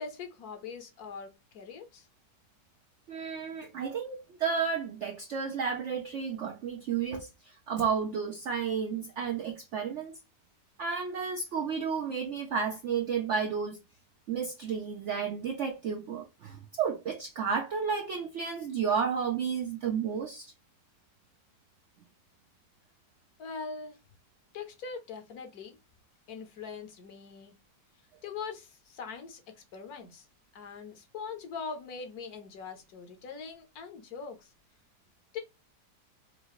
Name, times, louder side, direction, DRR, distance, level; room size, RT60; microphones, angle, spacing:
voice 1, 0.0-2.1 23.4-24.0 24.5-25.8 26.3-27.5 28.2-29.4 29.7-30.3 30.5-34.5 35.3-35.4, left 5 dB, 65° left, 1.2 m, -42 dB
voice 2, 3.1-10.2 10.8-13.8 14.3-20.5, right 6 dB, 70° right, 0.7 m, -32 dB
4.8 x 2.5 x 3.0 m
omnidirectional pair, 1.9 m